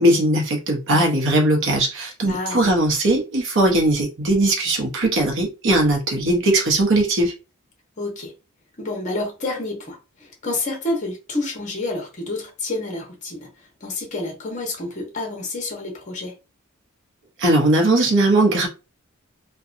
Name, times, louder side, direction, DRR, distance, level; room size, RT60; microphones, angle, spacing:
voice 1, 0.0-7.3 17.4-18.7, right 1 dB, 60° right, 0.8 m, -19 dB
voice 2, 2.3-2.7 8.0-8.3 8.8-13.5 13.8-16.3, left 2 dB, 35° left, 0.9 m, -29 dB
2.7 x 2.2 x 2.5 m
head